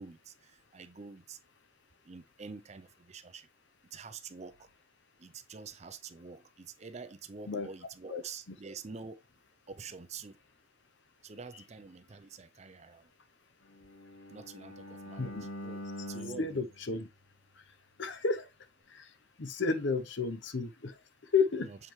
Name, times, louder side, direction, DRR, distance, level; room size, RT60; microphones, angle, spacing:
voice 1, 0.0-1.4 2.0-3.5 3.9-4.7 5.2-9.2 9.7-10.4 11.2-13.1 14.3-16.6 21.6-21.8, right 5 dB, 30° right, 0.5 m, -47 dB
Bowed string instrument, 13.7-17.8, left 1 dB, 80° left, 1.5 m, -45 dB
voice 2, 16.4-17.1 17.6-17.7 18.0-18.5 18.9-21.7, left 4 dB, 55° left, 0.7 m, -32 dB
7.2 x 4.5 x 3.1 m
head